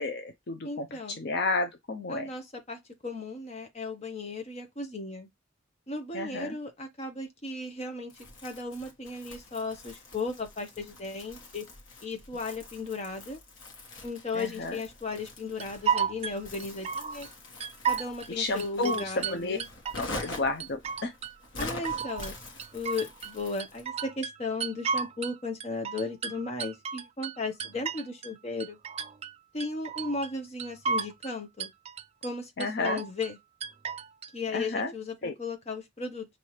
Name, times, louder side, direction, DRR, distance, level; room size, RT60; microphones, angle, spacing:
voice 1, 0.0-2.3 6.1-6.6 14.3-14.8 18.3-19.6 19.9-21.1 32.6-33.0 34.5-34.9 35.2-35.3, left 3 dB, 55° left, 0.6 m, -31 dB
voice 2, 0.6-1.2 2.1-5.3 5.9-8.1 8.4-11.6 12.0-13.4 14.0-17.3 17.9-19.7 21.6-22.3 22.7-28.8 29.5-31.7 32.2-33.4 34.3-36.3, left 3 dB, 35° left, 1.0 m, -36 dB
Crumpling crinkling, 8.1-23.9, left 2 dB, 85° left, 1.4 m, -45 dB
sound 1, 15.6-17.3 17.6-18.3 18.6-20.3 20.6-21.3 21.6-23.3 23.6-25.4 25.6-28.3 28.6-29.3 29.6-30.3 30.6-31.3 31.6-32.3 32.6-33.3 33.6-34.3, right 6 dB, 30° right, 0.3 m, -33 dB
5.7 x 2.7 x 3.1 m
head